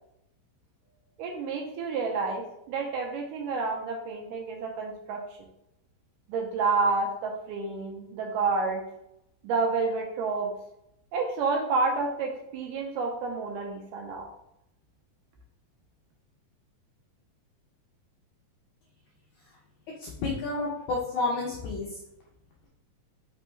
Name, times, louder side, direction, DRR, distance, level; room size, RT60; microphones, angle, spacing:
voice 1, 1.2-5.2 6.3-8.8 9.4-10.5 11.1-14.3, right 4 dB, 80° right, 1 dB, 2.0 m, -29 dB
voice 2, 20.0-21.9, left 3 dB, 80° left, -3 dB, 1.7 m, -30 dB
5.3 x 3.2 x 3.1 m, 0.80 s
omnidirectional pair, 4.1 m